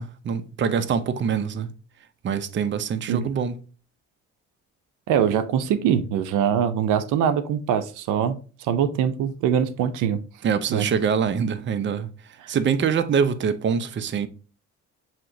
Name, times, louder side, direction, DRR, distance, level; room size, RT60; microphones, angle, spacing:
voice 1, 0.0-1.7 2.2-3.5 10.4-12.1 12.5-14.3, right 6 dB, 40° right, 0.5 m, -24 dB
voice 2, 5.1-10.2 10.7-10.9, right 8 dB, 90° right, 0.5 m, -23 dB
7.3 x 2.8 x 2.6 m
cardioid pair, 90°, 30 cm